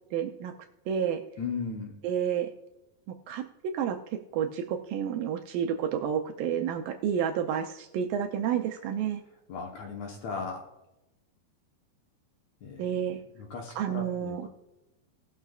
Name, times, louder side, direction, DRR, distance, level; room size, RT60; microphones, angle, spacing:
voice 1, 0.1-0.5 0.9-1.2 2.0-2.5 3.3-9.2 12.8-13.2 13.8-14.5, right 8 dB, 80° right, 4 dB, 2.1 m, -30 dB
voice 2, 1.4-2.0 9.5-10.7 12.6-13.0 13.3-14.5, left 5 dB, 70° left, 1 dB, 1.7 m, -37 dB
19.0 x 6.5 x 2.3 m, 0.95 s
omnidirectional pair, 4.4 m